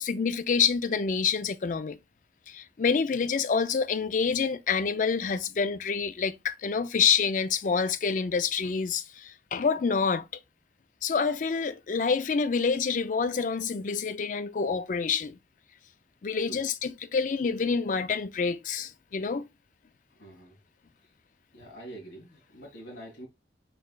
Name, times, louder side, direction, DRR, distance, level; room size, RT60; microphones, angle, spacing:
voice 1, 0.0-2.0 2.5-10.2 11.0-15.4 16.2-19.5, left 5 dB, 45° left, 0.4 m, -27 dB
voice 2, 20.2-20.6 21.5-23.3, right 1 dB, 85° left, 1.9 m, -45 dB
4.6 x 4.5 x 2.2 m
head